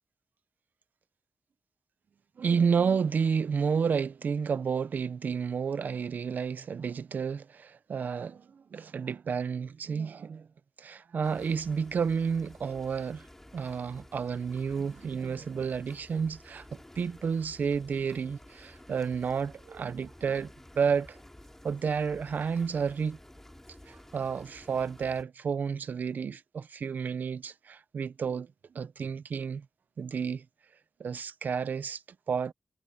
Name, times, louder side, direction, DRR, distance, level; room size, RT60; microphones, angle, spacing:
voice 1, 2.4-10.5 10.8-13.3 13.5-16.6 17.0-21.2 21.6-23.2 23.9-28.5 28.7-29.6 30.0-30.4 31.0-32.0 32.3-32.5, right 6 dB, 75° right, 0.8 m, -31 dB
sound 1, 11.2-25.2, left 1 dB, 10° left, 6.5 m, -52 dB
cardioid pair, 75°, 3 cm